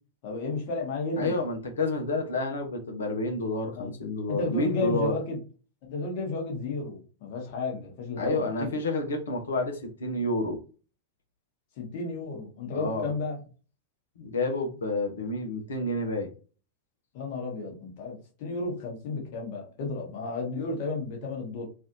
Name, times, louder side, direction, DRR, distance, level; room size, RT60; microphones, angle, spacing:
voice 1, 0.2-1.4 3.7-3.9 4.3-5.4 5.8-8.7 11.8-13.4 17.1-21.7, left 3 dB, 50° left, 0 dB, 1.4 m, -33 dB
voice 2, 1.2-5.1 8.2-10.6 12.7-13.1 14.2-16.3, left 2 dB, 65° left, 3 dB, 0.9 m, -29 dB
3.2 x 2.5 x 2.7 m, 0.36 s
figure-of-eight pair, 90°, 0 cm